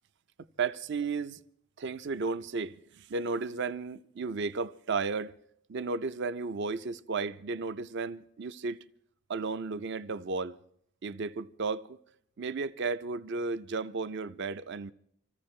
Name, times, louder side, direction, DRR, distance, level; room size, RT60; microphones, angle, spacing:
voice 1, 0.6-1.4 1.8-5.3 5.7-8.8 9.3-10.6 11.0-12.0 12.4-14.9, right 4 dB, 50° right, 0.5 m, -34 dB
26.5 x 14.5 x 3.2 m
head